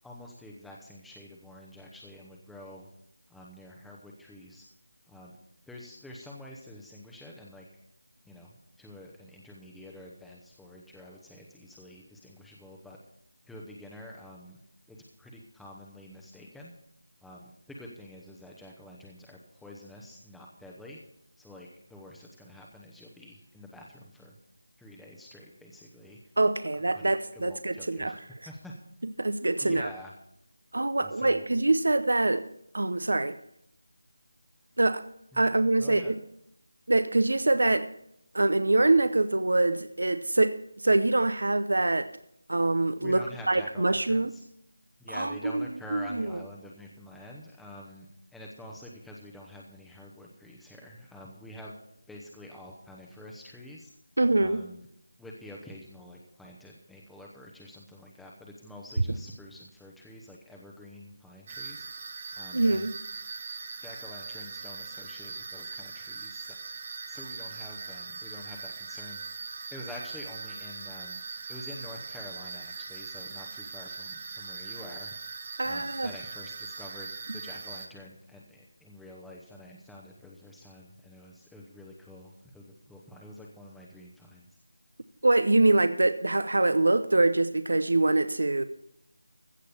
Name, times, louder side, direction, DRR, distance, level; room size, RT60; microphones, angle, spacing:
voice 1, 0.0-2.9 3.3-4.6 5.1-5.4 5.7-7.6 8.2-13.0 13.5-14.6 14.9-16.7 17.2-21.0 21.4-24.3 24.8-26.2 27.0-28.7 29.6-30.1 31.0-31.5 35.3-35.5 35.8-36.1 43.0-44.4 45.0-48.1 48.3-51.7 52.1-53.9 54.4-54.9 55.2-61.9 62.4-62.9 63.8-66.6 67.1-69.2 69.7-71.2 71.5-75.1 75.6-84.5, left 1 dB, ahead, -3 dB, 0.9 m, -47 dB
voice 2, 26.4-28.2 29.0-29.9 30.7-32.5 32.7-33.4 34.8-35.0 35.4-36.2 36.9-37.9 38.3-42.1 42.5-44.3 45.1-45.7 45.9-46.3 54.2-54.6 62.5-62.9 75.6-76.1 85.2-88.6, right 2 dB, 75° right, 12 dB, 0.7 m, -24 dB
sound 1, 61.5-77.9, right 5 dB, 30° right, 1.2 m, -41 dB
15.5 x 6.5 x 7.0 m, 0.73 s
figure-of-eight pair, 170°, 0 cm